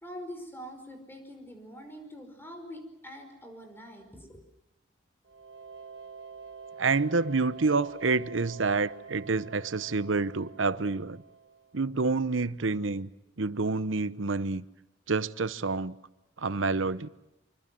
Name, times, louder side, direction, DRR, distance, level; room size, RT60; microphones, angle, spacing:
voice 1, 0.0-4.4, equal, 10° left, 5.2 m, -44 dB
sound 1, 5.2-11.9, right 5 dB, 65° right, 1.7 m, -47 dB
voice 2, 6.8-11.2 11.7-13.1 13.4-14.6 15.1-15.9 16.4-17.1, right 4 dB, 85° right, 0.9 m, -28 dB
25.5 x 25.0 x 7.8 m
head